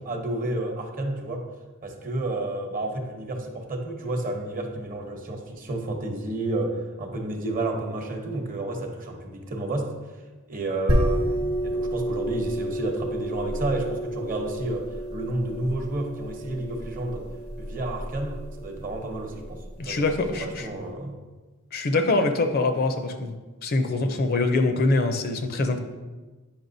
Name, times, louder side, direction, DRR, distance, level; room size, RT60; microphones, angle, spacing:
voice 1, 0.0-1.4 1.8-9.9 10.5-17.2 17.6-21.2, right 2 dB, 40° right, 3 dB, 0.9 m, -31 dB
sound 1, 10.9-20.2, equal, 80° right, 1.0 m, -30 dB
voice 2, 19.8-20.7 21.7-23.3 23.6-25.8, left 2 dB, 45° left, 6 dB, 0.5 m, -24 dB
8.7 x 5.6 x 2.6 m, 1.3 s
head